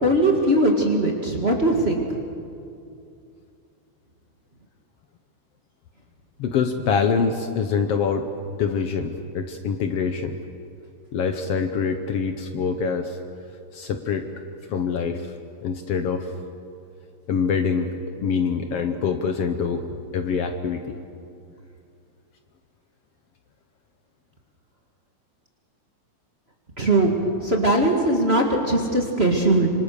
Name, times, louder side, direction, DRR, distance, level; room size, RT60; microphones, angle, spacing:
voice 1, 0.0-2.0 26.8-29.7, right 1 dB, 25° right, 1 dB, 1.8 m, -20 dB
voice 2, 6.4-8.3 8.6-10.4 11.1-13.2 13.7-14.2 14.7-15.3 15.6-16.3 17.3-17.9 18.2-21.0, left 6 dB, 65° left, 7 dB, 1.8 m, -25 dB
26.0 x 25.5 x 6.7 m, 2.5 s
omnidirectional pair, 3.3 m